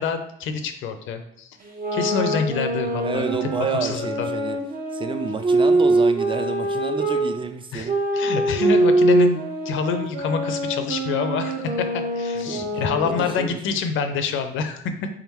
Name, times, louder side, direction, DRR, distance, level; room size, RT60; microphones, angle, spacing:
voice 1, 0.0-1.5 1.9-4.3 7.7-9.4 9.7-14.9, left 6 dB, 80° left, 8 dB, 0.5 m, -26 dB
sound 1, 1.6-7.3 7.9-13.5, right 2 dB, 45° right, 1.0 m, -23 dB
voice 2, 3.0-4.6 4.9-8.0 12.5-13.6, right 4 dB, 25° right, 7 dB, 0.4 m, -29 dB
3.6 x 3.6 x 3.0 m, 0.78 s
cardioid pair, 90°, 20 cm